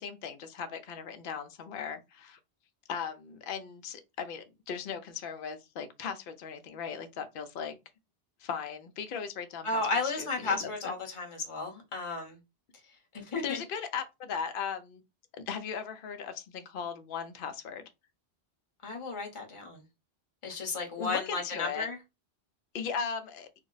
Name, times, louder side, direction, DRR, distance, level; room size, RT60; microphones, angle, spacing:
voice 1, 0.0-2.4 2.9-7.8 8.4-10.9 13.4-15.0 15.3-17.8 21.0-21.9 22.7-23.5, left 6 dB, 60° left, 0.7 m, -38 dB
voice 2, 9.6-12.4 13.1-13.6 18.8-19.8 20.4-22.0, left 3 dB, 30° left, 0.8 m, -33 dB
2.6 x 2.0 x 3.8 m
omnidirectional pair, 1.1 m